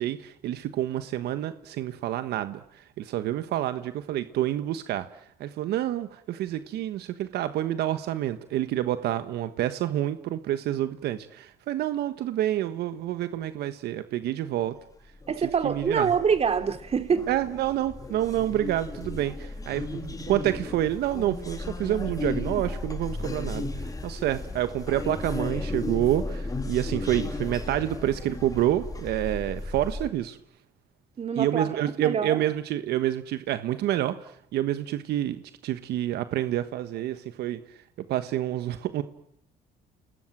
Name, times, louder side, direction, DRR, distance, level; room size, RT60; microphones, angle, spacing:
voice 1, 0.0-5.1 5.4-14.7 15.6-16.1 17.3-30.4 31.3-37.6 38.1-39.0, right 13 dB, 75° right, 1.4 m, -28 dB
sound 1, 15.1-30.1, left 2 dB, 20° left, 2.8 m, -35 dB
voice 2, 15.3-17.3 31.2-31.7 32.0-32.4, right 6 dB, 35° right, 3.2 m, -25 dB
29.0 x 20.0 x 9.1 m
cardioid pair, 110°, 17 cm